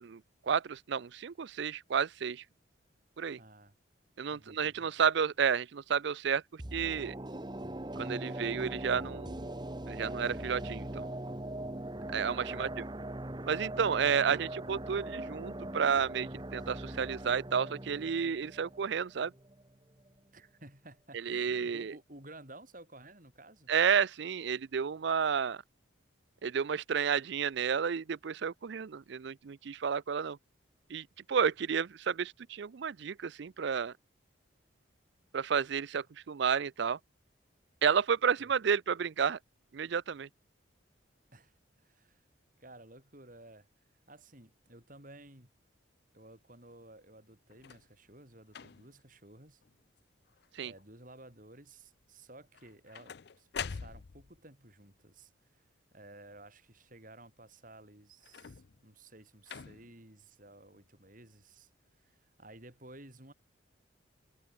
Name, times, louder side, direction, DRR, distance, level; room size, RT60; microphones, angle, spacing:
voice 1, 0.0-2.4 3.2-3.4 4.2-7.1 8.0-9.5 9.9-11.1 12.1-12.8 13.5-19.3 21.1-21.9 23.7-25.6 26.4-30.4 30.9-33.9 35.3-37.0 37.8-39.4 39.7-40.3 50.5-50.7, right 7 dB, 60° right, 0.4 m, -31 dB
voice 2, 3.4-3.8 4.3-4.9 12.4-12.8 20.3-23.7 38.4-38.5 41.3-41.5 41.8-42.2 42.6-43.7 44.1-45.5 46.1-49.6 50.6-55.6 55.9-61.7 62.0-63.3, right 2 dB, 40° right, 4.7 m, -54 dB
sound 1, 6.6-19.7 20.0-20.1, right 1 dB, 20° right, 1.1 m, -41 dB
sound 2, 47.5-47.9 48.5-49.0 49.6-50.0 50.3-50.8 52.5-54.4 58.2-58.9 59.5-60.0 60.9-61.0, left 7 dB, 55° left, 0.5 m, -45 dB
head